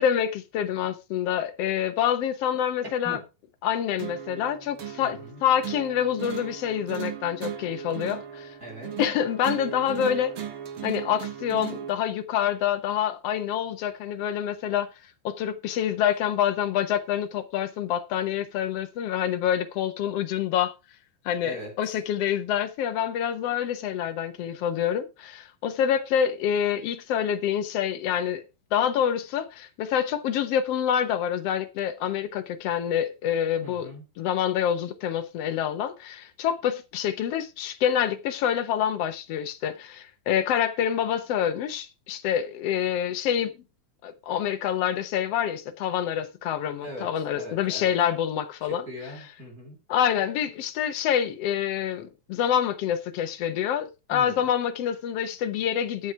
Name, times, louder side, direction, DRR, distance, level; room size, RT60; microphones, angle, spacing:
voice 1, 0.0-3.2 3.6-8.5 9.0-10.4 10.8-14.9 15.2-20.7 21.2-28.4 28.7-33.9 34.2-43.5 44.0-48.9 49.9-56.1, left 9 dB, 75° left, 1.4 m, -27 dB
sound 1, 4.0-12.0, right 9 dB, 45° right, 1.8 m, -37 dB
voice 2, 5.0-5.4 8.6-9.0 21.4-22.0 33.6-34.0 46.8-47.9 48.6-49.8 54.1-54.5, equal, 25° right, 3.9 m, -40 dB
12.5 x 7.1 x 4.6 m
omnidirectional pair, 4.1 m